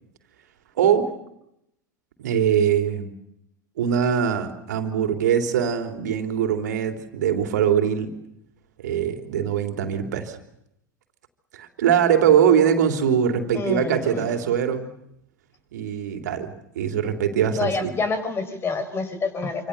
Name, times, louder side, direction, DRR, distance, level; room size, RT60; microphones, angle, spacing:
voice 1, 0.8-1.1 2.2-3.1 3.8-8.1 8.8-10.4 11.5-14.9 15.7-17.9, right 8 dB, 65° right, 6 dB, 3.4 m, -22 dB
voice 2, 13.5-14.3 17.6-19.7, left 4 dB, 25° left, 10 dB, 5.5 m, -27 dB
27.5 x 26.5 x 6.8 m, 0.81 s
figure-of-eight pair, 85°, 10 cm